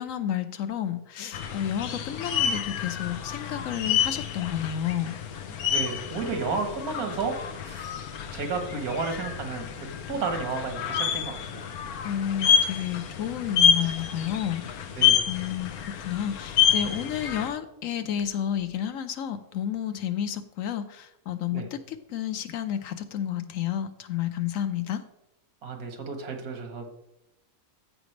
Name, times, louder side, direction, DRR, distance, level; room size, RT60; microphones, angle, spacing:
voice 1, 0.0-5.2 12.0-15.0 15.3-25.0, left 10 dB, 70° left, 10 dB, 1.1 m, -31 dB
sound 1, 1.3-17.5, left 8 dB, 85° left, 1.3 m, -28 dB
voice 2, 5.5-7.4 7.6-8.0 8.3-9.7 10.1-11.6 15.0-15.2 21.5-21.7 25.6-26.9, right 4 dB, 85° right, 5 dB, 1.7 m, -32 dB
14.5 x 5.1 x 3.2 m, 0.86 s
omnidirectional pair, 1.5 m